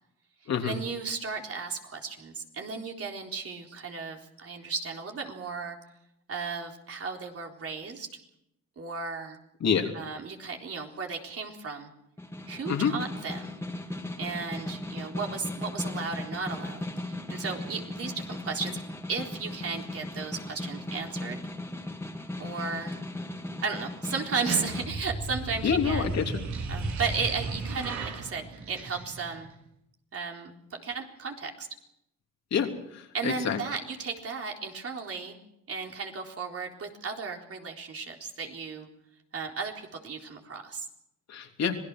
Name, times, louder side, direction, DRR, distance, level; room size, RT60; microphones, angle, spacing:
voice 1, 0.6-5.8 6.3-8.1 8.8-9.4 9.9-11.9 12.5-13.6 14.2-18.8 19.1-21.5 22.4-23.0 23.6-26.1 26.7-29.5 30.1-30.6 30.8-31.7 33.1-35.4 35.7-38.9 39.3-40.9, right 5 dB, 50° right, 1 dB, 4.0 m, -35 dB
voice 2, 9.6-9.9 12.7-12.9 25.6-26.3 32.5-33.6 41.3-41.8, left 7 dB, 60° left, 3 dB, 3.3 m, -27 dB
Snare drum, 12.2-24.9, left 1 dB, 10° left, 3.1 m, -37 dB
sound 1, 24.2-29.5, right 3 dB, 75° right, 4.2 m, -35 dB
26.0 x 18.0 x 6.2 m, 0.82 s
cardioid pair, 90°, 30 cm